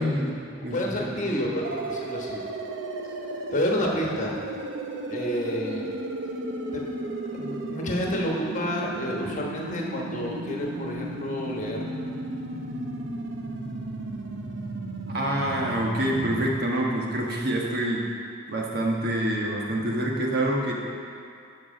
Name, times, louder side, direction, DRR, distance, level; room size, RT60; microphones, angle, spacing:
voice 1, 0.0-1.2 15.1-18.0 18.5-20.7, right 1 dB, 55° right, -2 dB, 1.3 m, -26 dB
voice 2, 0.7-2.4 3.5-4.4 5.1-5.8 6.7-6.8 7.3-11.8, equal, 40° left, -1 dB, 1.2 m, -29 dB
sound 1, 1.6-16.5, right 1 dB, 70° right, 0.7 m, -34 dB
11.0 x 4.8 x 6.3 m, 2.5 s
head